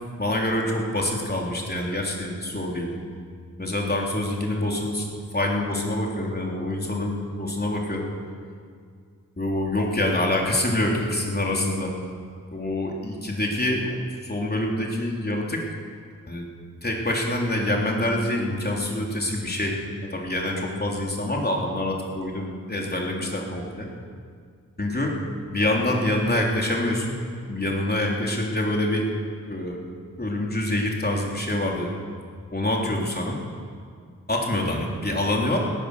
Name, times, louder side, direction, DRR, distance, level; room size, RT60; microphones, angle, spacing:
voice 1, 0.2-3.0 3.6-5.1 5.3-8.1 9.4-11.9 12.5-15.6 16.3-16.5 16.8-19.8 20.1-23.9 24.8-25.1 25.5-27.2 27.5-29.1 29.4-29.8 30.2-31.9 32.5-33.4 34.3-35.6, left 1 dB, 30° left, -1 dB, 3.4 m, -26 dB
17.5 x 11.0 x 6.9 m, 2.1 s
cardioid pair, 45°, 34 cm